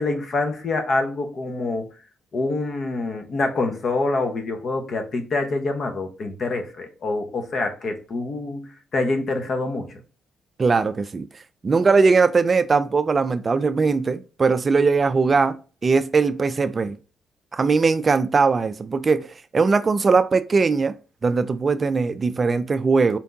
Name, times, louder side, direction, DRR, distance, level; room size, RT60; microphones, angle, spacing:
voice 1, 0.0-1.9 2.3-10.0, left 3 dB, 50° left, 1.0 m, -26 dB
voice 2, 10.6-11.3 11.6-17.0 17.5-20.9 21.2-23.2, right 4 dB, 35° right, 0.3 m, -20 dB
4.5 x 3.5 x 2.7 m
cardioid pair, 90°, 0 cm